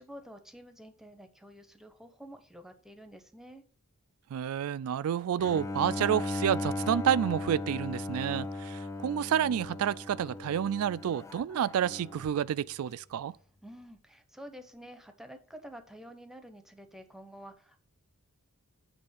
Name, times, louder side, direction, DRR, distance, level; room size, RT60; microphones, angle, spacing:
voice 1, 0.0-3.6 13.6-17.8, equal, ahead, 0.7 m, -49 dB
voice 2, 4.3-13.4, right 9 dB, 70° right, 0.3 m, -29 dB
Bowed string instrument, 5.4-12.4, left 2 dB, 15° left, 0.3 m, -37 dB
7.8 x 3.4 x 5.6 m
head